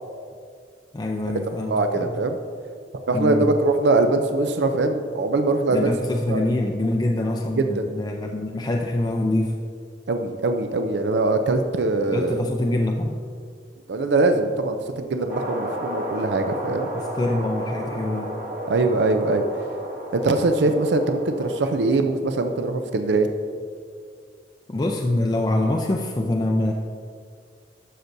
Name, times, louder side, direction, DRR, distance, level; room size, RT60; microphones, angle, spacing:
voice 1, 0.9-2.1 3.1-3.5 5.7-9.5 12.1-13.2 16.6-18.4 24.7-26.7, left 1 dB, 25° left, 1 dB, 0.4 m, -25 dB
voice 2, 1.7-2.4 3.1-5.9 6.3-6.4 7.6-7.8 10.1-12.4 13.9-16.9 18.7-19.7 20.1-23.3, right 3 dB, 75° right, 6 dB, 0.5 m, -22 dB
sound 1, 15.3-21.8, equal, 50° right, 1.2 m, -32 dB
11.5 x 6.6 x 2.7 m, 2.2 s
head